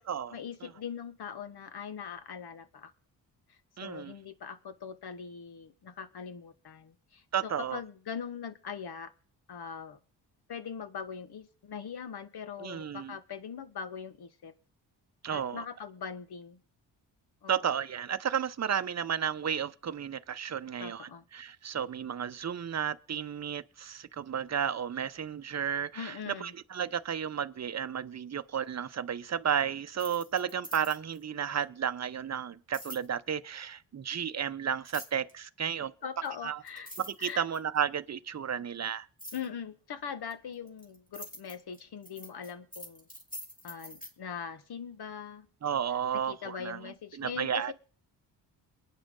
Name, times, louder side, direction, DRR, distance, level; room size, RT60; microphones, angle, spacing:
voice 1, 0.3-2.9 3.5-9.1 9.5-10.0 10.5-14.5 15.3-16.6 17.4-17.5 20.8-21.2 25.9-26.5 36.0-36.9 37.2-37.4 39.3-43.1 43.6-45.5 46.1-47.7, left 7 dB, 60° left, 1.6 m, -41 dB
voice 2, 3.8-4.1 7.3-7.8 12.6-13.1 15.2-15.6 17.5-35.9 36.4-36.6 37.0-39.1 45.6-46.8 47.2-47.7, right 8 dB, 35° right, 0.8 m, -33 dB
sound 1, 29.9-31.2 32.7-33.1 34.9-35.3 36.3-36.4 36.7-37.8 39.2-39.5 40.3-44.1, equal, 20° left, 3.8 m, -45 dB
22.5 x 9.2 x 3.8 m
cardioid pair, 60°, 44 cm